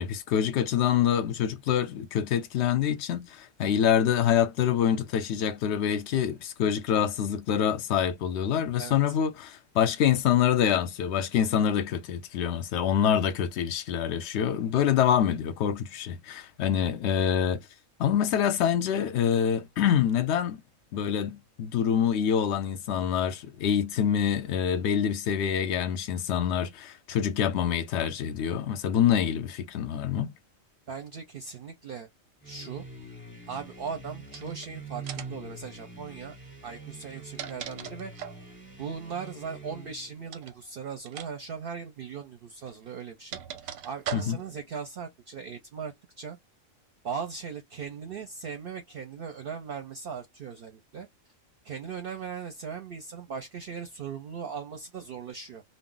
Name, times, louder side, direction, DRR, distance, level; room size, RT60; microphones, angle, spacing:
voice 1, 0.0-17.7 18.0-20.6 20.9-30.3 44.1-44.4, left 9 dB, 65° left, 0.8 m, -26 dB
voice 2, 8.8-9.2 30.9-32.1 32.4-32.8 33.5-36.3 36.6-38.1 38.8-46.4 47.0-51.1 51.6-55.6, right 6 dB, 55° right, 0.7 m, -39 dB
sound 1, 32.4-40.2, right 3 dB, 10° left, 0.8 m, -44 dB
sound 2, 34.3-34.7 35.1-35.5 37.0-38.5 40.3-40.6 41.1-41.3 41.6-41.7 42.7-44.6, right 9 dB, 90° right, 1.0 m, -39 dB
2.3 x 2.0 x 3.7 m
omnidirectional pair, 1.4 m